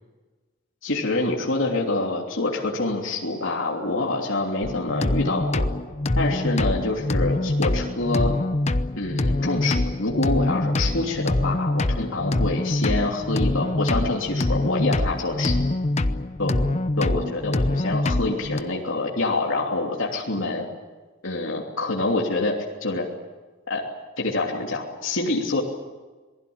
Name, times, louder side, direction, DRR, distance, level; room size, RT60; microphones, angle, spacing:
voice 1, 0.8-5.7 6.1-8.3 8.9-15.5 16.4-16.5 17.0-20.7 21.2-23.1 23.7-23.8 24.2-25.6, left 2 dB, 70° left, -1 dB, 3.1 m, -26 dB
sound 1, 4.6-18.6, left 2 dB, 30° left, 0.8 m, -24 dB
27.5 x 20.0 x 8.8 m, 1.3 s
head